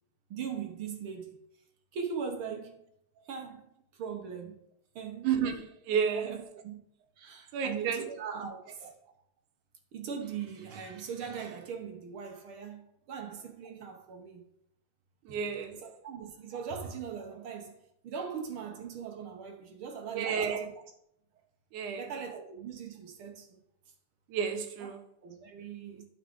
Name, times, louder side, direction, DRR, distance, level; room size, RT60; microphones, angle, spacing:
voice 1, 0.3-1.4 1.9-2.8 3.3-4.6 4.9-5.3 6.1-6.8 7.2-8.9 9.9-14.4 15.3-15.4 15.7-17.8 18.0-20.7 22.0-23.5 24.8-24.9 25.2-26.0, right 6 dB, 60° right, 1.5 m, -40 dB
voice 2, 5.2-6.3 7.5-8.0 15.3-15.8 20.1-20.7 21.7-22.1 24.3-25.0, right 7 dB, 85° right, 2.4 m, -31 dB
12.0 x 4.9 x 3.7 m
omnidirectional pair, 3.4 m